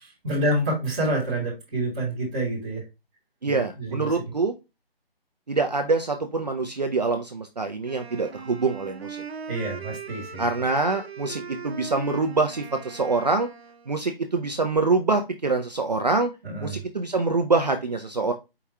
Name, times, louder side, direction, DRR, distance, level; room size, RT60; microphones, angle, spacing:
voice 1, 0.0-2.8 3.4-4.0 9.5-10.5 16.4-16.8, right 1 dB, 5° right, -9 dB, 0.8 m, -28 dB
voice 2, 3.4-4.5 5.5-9.2 10.4-13.5 13.9-16.3 16.6-18.3, right 3 dB, 45° right, 5 dB, 0.4 m, -25 dB
Wind instrument woodwind instrument, 7.8-14.0, right 5 dB, 90° right, 0.8 m, -40 dB
4.7 x 2.4 x 4.0 m, 0.25 s
figure-of-eight pair, 165°, 30 cm